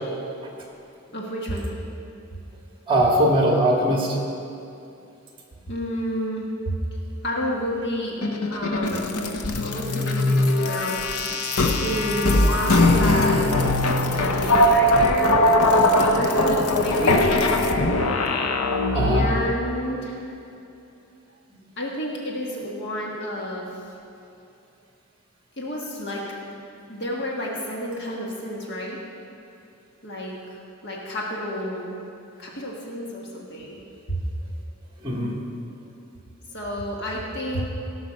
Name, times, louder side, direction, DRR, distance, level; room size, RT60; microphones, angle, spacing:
voice 1, 1.1-1.8 5.7-6.7 7.2-8.2 8.5-9.3 9.6-11.0 11.3-13.6 14.2-15.3 15.7-17.3 18.9-20.2 21.8-24.0 25.6-26.2 26.9-29.0 30.0-30.6 30.8-31.9 32.4-33.8 34.1-34.2 36.5-37.7, equal, 55° left, -3 dB, 1.6 m, -30 dB
voice 2, 2.9-4.2 18.9-19.3 35.0-35.4, right 1 dB, 25° right, -1 dB, 1.9 m, -20 dB
sound 1, 8.2-19.5, left 1 dB, 90° left, 0.8 m, -21 dB
17.5 x 5.8 x 6.4 m, 2.7 s
head